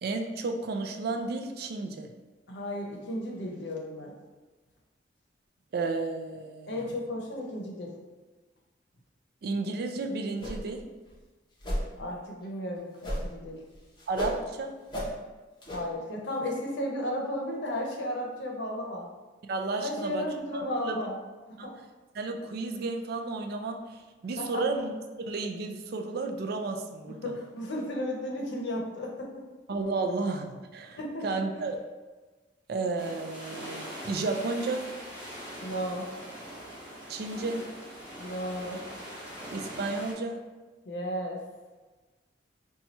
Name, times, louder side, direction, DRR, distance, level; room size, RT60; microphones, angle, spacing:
voice 1, 0.0-2.1 5.7-6.8 9.4-10.8 14.1-14.7 19.5-21.1 21.6-21.7 22.1-24.9 25.2-27.3 29.7-31.8 32.7-34.9 37.1-37.6 39.5-40.4, right 3 dB, 60° right, 4 dB, 0.4 m, -32 dB
voice 2, 2.5-4.1 6.7-8.0 12.0-13.6 15.7-19.1 19.8-21.2 21.5-21.7 24.4-24.6 27.1-29.4 31.0-31.3 31.5-31.6 35.6-36.1 38.2-38.8 40.9-41.4, left 1 dB, 65° left, -1 dB, 0.7 m, -34 dB
sound 1, 10.4-10.8 11.1-11.2 11.6-11.9 13.0-13.4 13.7-14.4 14.9-15.1 15.6-15.8, equal, 25° left, 0.7 m, -33 dB
sound 2, 33.0-40.1, equal, 5° right, 1.1 m, -42 dB
2.8 x 2.3 x 4.1 m, 1.3 s
head